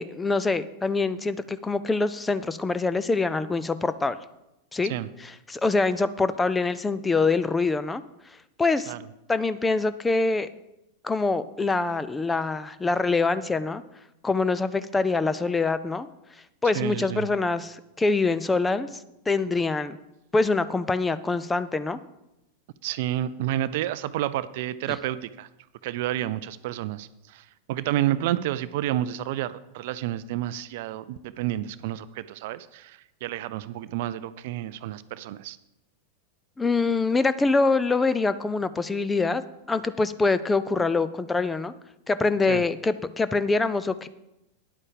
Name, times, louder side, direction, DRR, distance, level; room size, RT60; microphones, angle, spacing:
voice 1, 0.0-4.2 4.7-4.9 5.2-8.0 8.6-9.0 9.3-10.5 11.0-13.8 14.2-16.1 16.6-20.0 20.3-22.0 24.9-25.0 36.6-39.4 39.7-41.7 42.1-44.1, left 3 dB, 10° left, 14 dB, 0.5 m, -25 dB
voice 2, 16.7-17.3 22.8-25.5 25.8-35.6 42.5-42.6, right 13 dB, 50° right, 16 dB, 0.4 m, -30 dB
10.0 x 8.3 x 5.0 m, 0.90 s
figure-of-eight pair, 90°, 0 cm